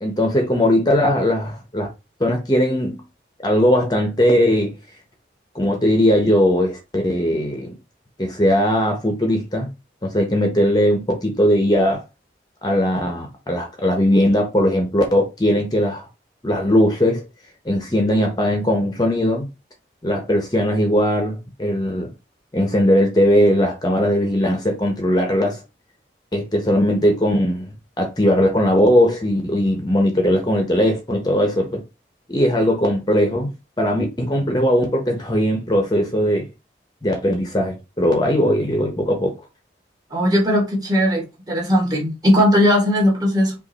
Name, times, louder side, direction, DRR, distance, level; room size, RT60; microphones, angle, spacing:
voice 1, 0.0-1.9 2.2-3.0 3.4-4.7 5.5-7.7 8.2-9.7 10.0-12.0 12.6-16.0 16.4-17.2 17.6-19.5 20.0-22.1 22.5-25.6 26.3-31.8 32.3-33.5 33.8-36.5 37.0-39.3, equal, 20° left, 0.8 m, -19 dB
voice 2, 40.1-43.5, equal, 20° right, 1.6 m, -18 dB
5.2 x 2.5 x 4.0 m
head